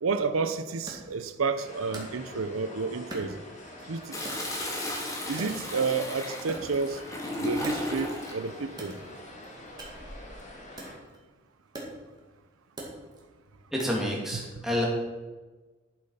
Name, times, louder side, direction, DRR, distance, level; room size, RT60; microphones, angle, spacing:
voice 1, 0.0-3.3 3.9-4.2 5.3-7.0 7.4-9.0 14.3-14.7, right 4 dB, 85° right, 10 dB, 0.6 m, -30 dB
Wood, 0.9-2.6 3.1-3.9 4.2-6.1 6.3-8.3 8.7-14.2, right 1 dB, 20° right, 2.1 m, -44 dB
sound 1, 1.6-11.0, left 1 dB, 35° left, 2.2 m, -46 dB
Toilet flush, 4.1-8.4 9.8-10.3, left 1 dB, 15° left, 1.7 m, -35 dB
voice 2, 13.7-14.9, left 1 dB, ahead, -3 dB, 2.4 m, -29 dB
11.0 x 7.8 x 5.6 m, 1.3 s
head